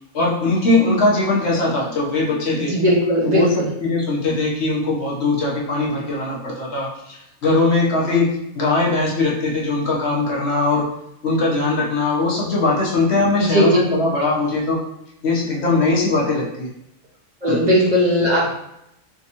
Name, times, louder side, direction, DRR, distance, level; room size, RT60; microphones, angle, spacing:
voice 1, 0.1-2.7 3.2-10.9 11.2-14.8 15.2-16.7 17.5-17.7, left 2 dB, 55° left, -4 dB, 1.1 m, -20 dB
voice 2, 2.6-3.5 13.5-13.8 17.4-18.5, equal, 40° right, -4 dB, 0.7 m, -17 dB
3.4 x 3.1 x 2.8 m, 0.81 s
omnidirectional pair, 1.4 m